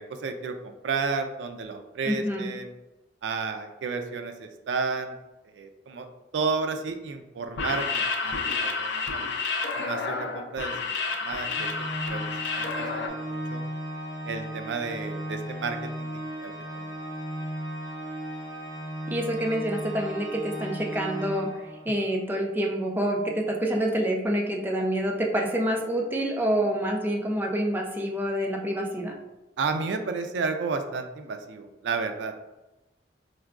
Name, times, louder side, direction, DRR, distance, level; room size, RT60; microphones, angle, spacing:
voice 1, 0.0-2.7 3.2-5.2 5.5-6.1 6.3-9.2 9.8-11.7 12.1-12.2 12.6-13.6 14.3-17.0 29.6-32.3, right 4 dB, 85° right, 7 dB, 0.4 m, -32 dB
voice 2, 2.0-2.5 19.1-29.2, right 1 dB, 10° right, 0 dB, 0.4 m, -27 dB
sound 1, 7.5-13.1, left 4 dB, 75° left, 0.5 m, -30 dB
Organ, 11.5-22.1, equal, 20° left, 0.7 m, -36 dB
4.6 x 2.2 x 2.3 m, 0.99 s
head